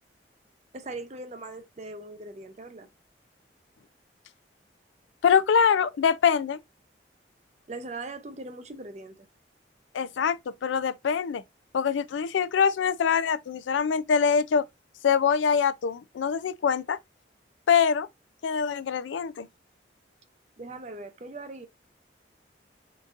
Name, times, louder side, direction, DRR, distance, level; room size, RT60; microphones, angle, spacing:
voice 1, 0.7-2.9 7.7-9.1 20.6-21.7, right 2 dB, 35° right, 0.6 m, -40 dB
voice 2, 5.2-6.6 9.9-11.4 11.7-14.6 15.0-17.0 17.7-18.1 18.4-19.5, left 6 dB, 85° left, 0.4 m, -24 dB
3.9 x 3.7 x 2.4 m
head